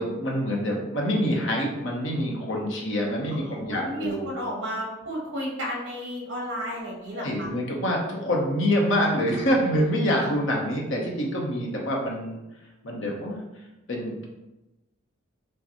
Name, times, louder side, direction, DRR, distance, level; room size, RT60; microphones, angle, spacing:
voice 1, 0.0-4.3 7.1-12.4 12.8-13.4 13.9-14.2, equal, 70° left, -1 dB, 1.0 m, -26 dB
voice 2, 3.3-7.5 10.2-10.3, equal, 60° right, -2 dB, 1.4 m, -33 dB
6.4 x 2.3 x 3.0 m, 0.99 s
head